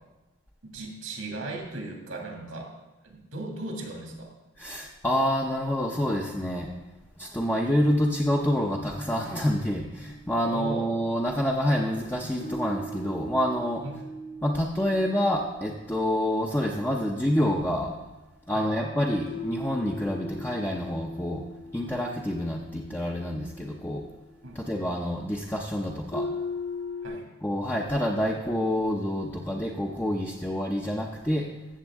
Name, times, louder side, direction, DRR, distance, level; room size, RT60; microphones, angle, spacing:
voice 1, 0.6-2.7 3.0-4.3 10.4-10.9 13.8-14.1 18.5-18.7 24.4-24.8 27.0-27.3, right 2 dB, 80° right, 0 dB, 2.1 m, -37 dB
voice 2, 4.6-6.7 7.2-13.8 14.4-17.9 18.5-21.4 21.7-24.1 24.5-26.3 27.4-31.5, equal, 10° left, -1 dB, 0.7 m, -27 dB
sound 1, 12.4-17.9 19.3-24.7 26.1-27.1, left 1 dB, 55° left, 2.2 m, -40 dB
15.0 x 7.3 x 3.6 m, 1.1 s
head